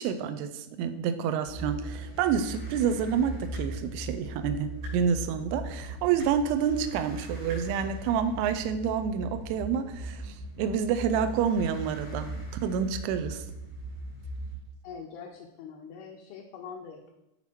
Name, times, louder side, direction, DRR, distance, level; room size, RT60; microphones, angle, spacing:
voice 1, 0.0-13.5, right 7 dB, 85° right, 10 dB, 2.5 m, -28 dB
sound 1, 1.4-14.6, right 1 dB, 50° left, 0.8 m, -39 dB
sound 2, 3.5-3.7 4.8-4.9 6.2-6.3 7.5-7.6 8.8-8.9, right 1 dB, 65° right, 3.6 m, -43 dB
voice 2, 14.8-17.1, left 6 dB, 80° left, 0 dB, 2.4 m, -43 dB
7.3 x 4.1 x 4.3 m, 0.88 s
omnidirectional pair, 4.7 m